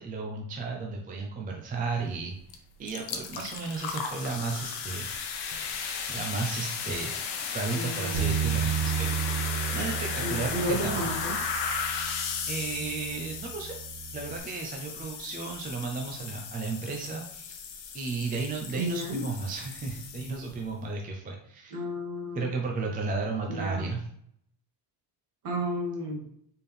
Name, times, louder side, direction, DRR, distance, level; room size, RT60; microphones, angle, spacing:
voice 1, 0.0-2.4 2.8-5.1 6.1-7.1 7.5-9.1 9.7-11.1 12.5-13.8 14.1-17.5 17.9-21.8 22.3-24.1, right 4 dB, 20° right, 1 dB, 0.4 m, -34 dB
sound 1, 2.5-2.6 2.9-20.6, left 6 dB, 55° left, 0.8 m, -35 dB
voice 2, 7.7-8.2 10.2-11.3 18.8-19.2 21.7-22.5 23.5-23.8 25.4-26.2, equal, 45° right, -2 dB, 1.7 m, -32 dB
Bass guitar, 8.1-14.4, right 9 dB, 70° right, 1.0 m, -33 dB
4.2 x 3.6 x 3.4 m, 0.68 s
cardioid pair, 150°, 47 cm